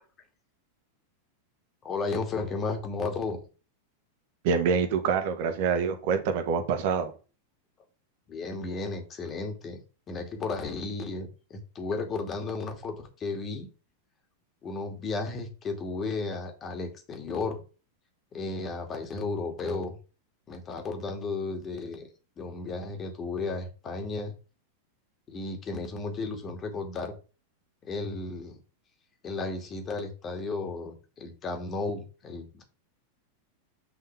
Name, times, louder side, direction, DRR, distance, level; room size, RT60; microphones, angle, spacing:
voice 1, 1.8-3.4 8.3-9.8 10.1-13.7 14.6-17.6 18.3-20.0 20.5-22.1 22.4-24.3 25.3-27.1 27.8-28.6 29.2-32.6, left 3 dB, 25° left, 5 dB, 2.5 m, -34 dB
voice 2, 4.4-7.1, right 6 dB, 50° right, 8 dB, 1.7 m, -26 dB
8.6 x 5.7 x 3.6 m, 0.33 s
figure-of-eight pair, 90°, 0 cm